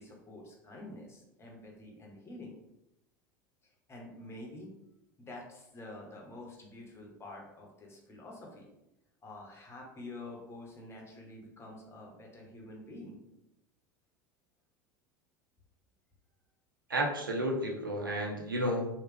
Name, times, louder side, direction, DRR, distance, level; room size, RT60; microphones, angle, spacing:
voice 1, 0.0-2.6 3.9-4.7 5.2-8.7 9.2-13.2, left 2 dB, 25° left, 0 dB, 1.0 m, -48 dB
voice 2, 16.9-18.9, right 1 dB, 85° right, 0 dB, 0.6 m, -32 dB
3.1 x 2.4 x 3.3 m, 0.88 s
figure-of-eight pair, 75°, 11 cm